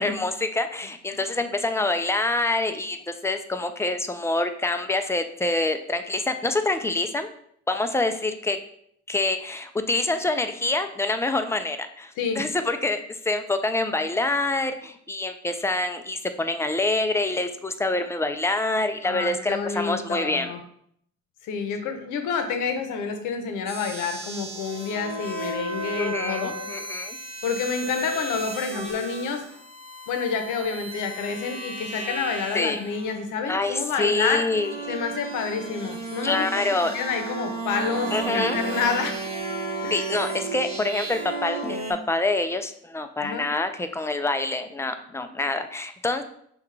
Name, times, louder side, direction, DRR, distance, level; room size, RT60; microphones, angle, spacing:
voice 1, 0.0-7.3 7.7-8.6 9.1-20.5 26.0-27.2 32.5-32.8 33.5-35.0 36.2-36.9 38.1-38.6 39.9-41.8 42.1-46.2, left 2 dB, 10° left, 8 dB, 0.3 m, -26 dB
voice 2, 19.0-20.6 21.4-26.6 27.4-29.4 30.1-34.4 34.9-36.6 36.9-39.2 39.8-40.0 43.2-43.5, left 5 dB, 90° left, 6 dB, 0.7 m, -29 dB
sound 1, 23.7-33.2 34.0-41.9, right 2 dB, 20° right, 1.0 m, -33 dB
5.6 x 2.3 x 3.2 m, 0.69 s
cardioid pair, 90°, 30 cm